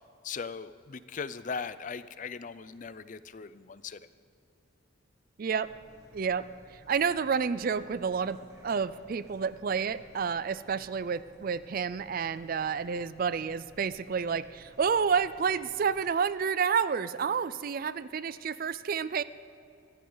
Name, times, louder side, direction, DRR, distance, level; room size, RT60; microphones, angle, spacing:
voice 1, 0.2-4.0, left 5 dB, 40° left, 15 dB, 0.4 m, -39 dB
voice 2, 5.4-5.7 6.1-8.4 8.6-19.2, right 6 dB, 45° right, 16 dB, 0.4 m, -30 dB
sound 1, 5.6-16.1, right 1 dB, 15° right, 2.1 m, -58 dB
23.5 x 14.5 x 3.9 m, 2.7 s
head